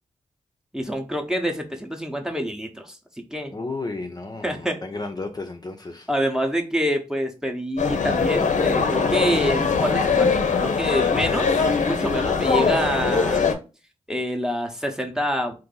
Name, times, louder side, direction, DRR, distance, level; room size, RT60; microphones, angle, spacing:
voice 1, 0.7-3.0 3.3-3.5 4.4-4.8 6.1-13.5 14.1-15.6, equal, 5° right, 0.8 m, -26 dB
voice 2, 3.5-6.1, left 3 dB, 30° left, 0.6 m, -33 dB
sound 1, 7.8-13.5, left 5 dB, 65° left, 0.7 m, -21 dB
2.6 x 2.6 x 3.8 m
supercardioid pair, 40°, 13 cm